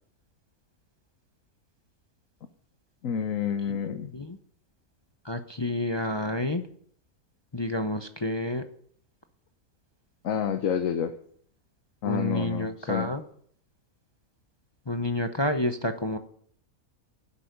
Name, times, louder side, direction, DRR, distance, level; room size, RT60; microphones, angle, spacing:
voice 1, 3.0-4.1 10.2-11.1 12.0-13.1, left 8 dB, 65° left, 8 dB, 1.3 m, -29 dB
voice 2, 3.7-4.4 5.2-6.6 7.5-8.6 12.0-13.2 14.9-16.2, left 1 dB, 25° left, 7 dB, 0.7 m, -29 dB
11.5 x 8.3 x 9.6 m, 0.62 s
omnidirectional pair, 1.5 m